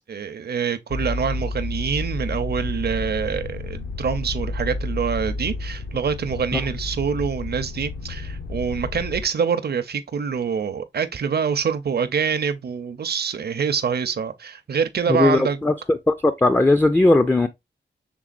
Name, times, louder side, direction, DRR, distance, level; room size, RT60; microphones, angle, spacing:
voice 1, 0.1-15.6, right 6 dB, 60° right, 0.6 m, -25 dB
sound 1, 0.9-9.2, left 2 dB, 60° left, 0.7 m, -30 dB
voice 2, 15.1-17.5, left 2 dB, 10° left, 0.4 m, -18 dB
6.0 x 3.5 x 2.4 m
wide cardioid pair, 95°, 19 cm